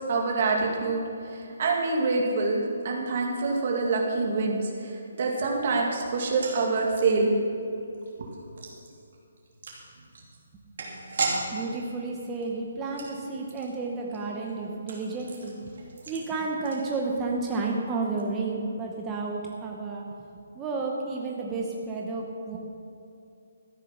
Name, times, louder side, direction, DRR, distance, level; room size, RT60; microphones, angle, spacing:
voice 1, 0.0-7.3 8.2-8.3, right 3 dB, 40° right, 0 dB, 2.2 m, -26 dB
sound 1, 6.1-17.4 17.6-17.7 18.0-18.2, right 3 dB, 55° right, 2.8 m, -38 dB
voice 2, 11.5-15.7 16.1-20.3 20.5-22.6, right 3 dB, 10° right, -1 dB, 0.8 m, -31 dB
13.5 x 9.8 x 5.8 m, 2.7 s
hypercardioid pair, 175°, 0 cm